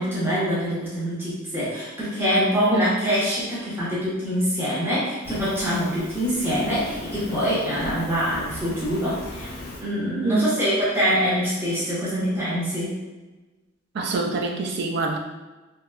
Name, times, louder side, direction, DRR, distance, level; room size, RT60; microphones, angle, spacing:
voice 1, 0.0-9.5 9.8-13.0, equal, 10° right, -10 dB, 0.8 m, -24 dB
Fire, 5.2-9.8, left 1 dB, 55° left, 0.4 m, -38 dB
voice 2, 13.9-15.2, right 3 dB, 60° right, 3 dB, 0.4 m, -25 dB
2.8 x 2.2 x 2.3 m, 1.2 s
head